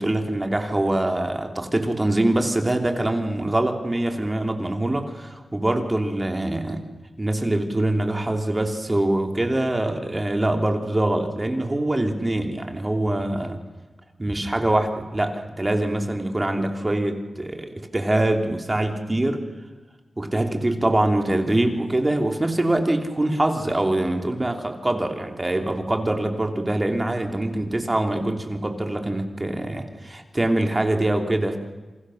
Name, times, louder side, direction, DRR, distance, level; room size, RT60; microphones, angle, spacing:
voice 1, 0.0-6.8 7.2-13.6 14.2-19.4 20.2-31.6, right 1 dB, 20° right, 4 dB, 3.0 m, -24 dB
29.5 x 27.5 x 6.5 m, 1.2 s
wide cardioid pair, 115°, 0 cm